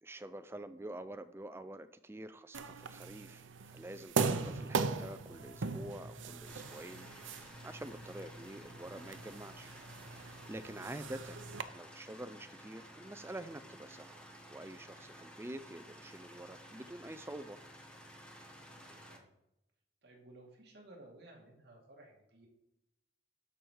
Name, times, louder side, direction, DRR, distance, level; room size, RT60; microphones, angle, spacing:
voice 1, 0.0-9.7 10.2-11.4 11.7-17.6, right 1 dB, 15° right, 11 dB, 0.4 m, -47 dB
sound 1, 2.5-11.6, right 4 dB, 85° right, 0.7 m, -39 dB
sound 2, 6.5-19.2, equal, 5° left, 1.1 m, -54 dB
voice 2, 18.6-19.3 20.0-22.5, right 2 dB, 60° right, -1 dB, 2.4 m, -57 dB
12.5 x 4.9 x 4.7 m, 0.89 s
head